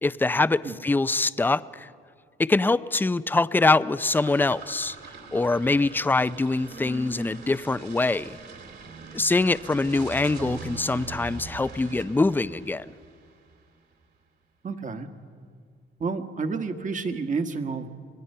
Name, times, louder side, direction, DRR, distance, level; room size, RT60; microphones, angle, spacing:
voice 1, 0.0-1.9 2.4-5.0 5.3-8.4 9.1-12.9, left 3 dB, 10° left, 16 dB, 0.5 m, -24 dB
sound 1, 4.0-13.6, right 3 dB, 55° right, 2.8 m, -42 dB
voice 2, 14.6-15.1 16.0-17.9, right 4 dB, 40° right, 7 dB, 1.5 m, -30 dB
26.5 x 19.5 x 5.6 m, 2.1 s
cardioid pair, 90°, 20 cm